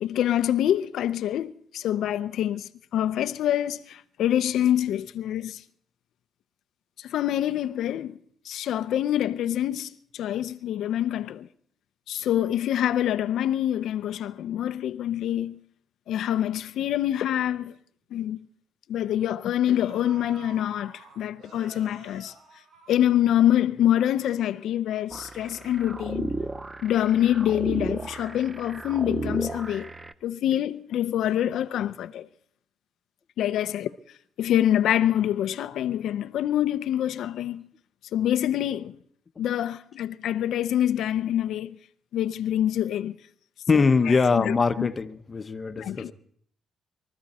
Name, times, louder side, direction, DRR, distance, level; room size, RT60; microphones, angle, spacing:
voice 1, 0.0-5.6 7.0-8.2 8.4-11.5 12.1-15.6 16.1-17.8 18.1-18.4 18.9-22.3 22.9-26.3 26.8-29.9 30.2-32.3 33.4-33.9 34.4-37.7 38.1-39.0 39.4-41.8 42.1-43.2 43.7-43.8 44.3-44.9 45.8-46.1, left 11 dB, 75° left, 0.7 m, -26 dB
sound 1, 17.6-17.7 18.0-18.2 19.2-19.3 19.7-23.7 24.0-24.1, right 3 dB, 80° right, 6.4 m, -49 dB
sound 2, 25.1-30.1, right 2 dB, 20° right, 0.7 m, -34 dB
voice 2, 43.7-46.1, left 4 dB, 30° left, 1.0 m, -22 dB
23.0 x 14.0 x 4.3 m
cardioid pair, 90°, 0 cm